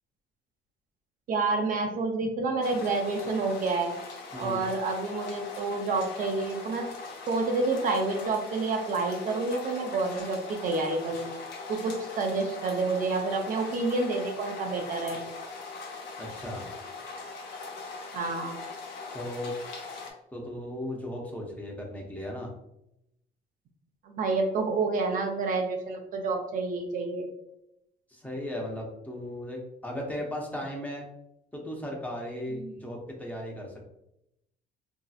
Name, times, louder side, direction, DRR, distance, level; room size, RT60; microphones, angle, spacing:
voice 1, 1.3-4.0 4.4-6.9 7.3-11.2 11.7-15.2 18.1-18.6 24.0-27.3 32.6-32.7, right 3 dB, 55° right, 3 dB, 0.5 m, -29 dB
sound 1, 2.6-20.1, left 4 dB, 85° left, 0.7 m, -41 dB
voice 2, 16.2-16.6 19.1-19.5 20.3-22.5 28.1-31.0 31.5-33.8, left 1 dB, 10° left, -1 dB, 0.7 m, -36 dB
2.9 x 2.7 x 2.3 m, 0.83 s
cardioid pair, 110°, 17 cm